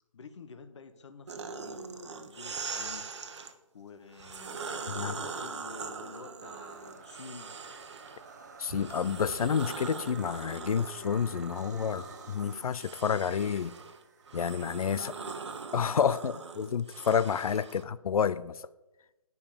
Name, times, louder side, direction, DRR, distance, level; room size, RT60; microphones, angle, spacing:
voice 1, 0.1-3.1 3.7-4.6 4.9-7.5 14.9-15.3 16.0-16.3 17.6-17.8, left 5 dB, 55° left, 1.0 m, -49 dB
sound 1, 1.3-3.5 4.1-8.2 8.7-17.8, right 5 dB, 50° right, 1.0 m, -41 dB
sound 2, 6.4-15.4, right 4 dB, 30° right, 0.8 m, -53 dB
voice 2, 8.6-13.7 14.3-15.1 15.7-18.7, left 7 dB, 80° left, 0.5 m, -29 dB
9.8 x 5.4 x 6.7 m
hypercardioid pair, 170°, 18 cm